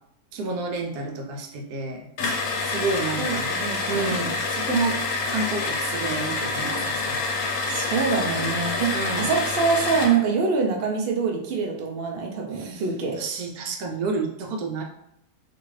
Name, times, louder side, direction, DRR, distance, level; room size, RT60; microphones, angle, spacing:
voice 1, 0.3-2.1 2.6-3.5 3.9-5.0 5.3-7.2 8.9-9.3 12.5-12.8 13.2-14.8, right 3 dB, 85° right, 3 dB, 1.1 m, -29 dB
sound 1, 2.2-10.2, left 3 dB, 65° left, 0.9 m, -27 dB
voice 2, 3.2-4.2 7.7-13.2, right 5 dB, 60° right, 1 dB, 0.6 m, -25 dB
2.7 x 2.5 x 3.1 m, 0.75 s
omnidirectional pair, 1.6 m